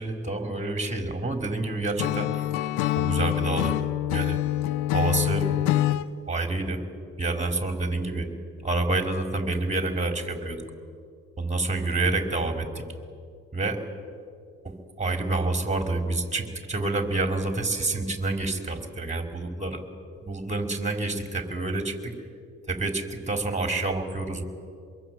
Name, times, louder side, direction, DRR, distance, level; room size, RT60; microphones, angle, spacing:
voice 1, 0.0-2.3 3.0-3.8 4.0-4.4 4.9-5.5 6.3-6.8 7.2-8.3 8.6-10.6 11.4-12.8 13.5-13.8 14.6-19.8 20.2-22.1 22.7-24.4, right 2 dB, 20° right, 5 dB, 4.8 m, -28 dB
Acoustic guitar / Strum, 2.0-6.1, left 14 dB, 80° left, 0.8 m, -25 dB
25.5 x 22.0 x 9.5 m, 2.3 s
hypercardioid pair, 55°, 31 cm